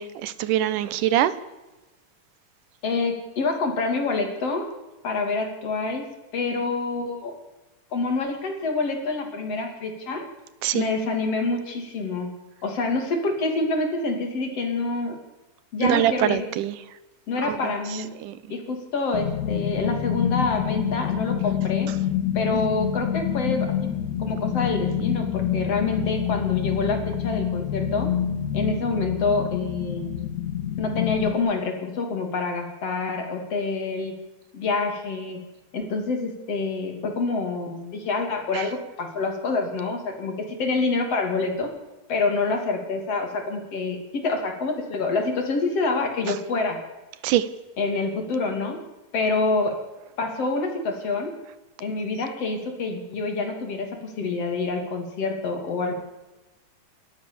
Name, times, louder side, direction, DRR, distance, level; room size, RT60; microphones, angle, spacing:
voice 1, 0.0-1.3 10.6-10.8 15.8-16.8 17.4-17.6 18.2-18.3 47.2-47.5, right 12 dB, 85° right, 15 dB, 2.5 m, -23 dB
voice 2, 2.8-4.7 5.0-6.1 6.3-7.3 7.9-10.3 10.7-12.3 12.6-15.2 15.7-16.5 17.3-18.1 18.5-21.9 22.4-23.9 24.2-28.1 28.5-30.1 30.8-34.1 34.5-35.4 35.7-41.7 42.1-46.8 47.8-48.8 49.1-49.8 50.2-51.3 51.8-55.9, left 3 dB, 50° left, 4 dB, 3.8 m, -27 dB
sound 1, 19.1-31.3, left 9 dB, 70° left, 2.7 m, -27 dB
29.0 x 13.0 x 7.1 m, 1.1 s
omnidirectional pair, 3.6 m